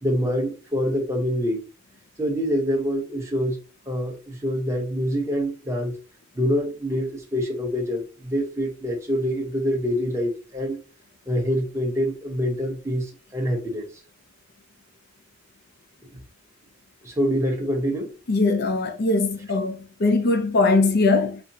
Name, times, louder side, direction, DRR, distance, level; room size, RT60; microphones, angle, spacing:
voice 1, 0.0-1.6 2.2-3.6 3.9-5.9 6.3-10.8 11.3-13.9 16.1-16.2 17.0-18.1, equal, 15° right, 1.0 m, -25 dB
voice 2, 18.3-21.4, left 3 dB, 55° left, 0.5 m, -21 dB
4.9 x 2.1 x 2.8 m
head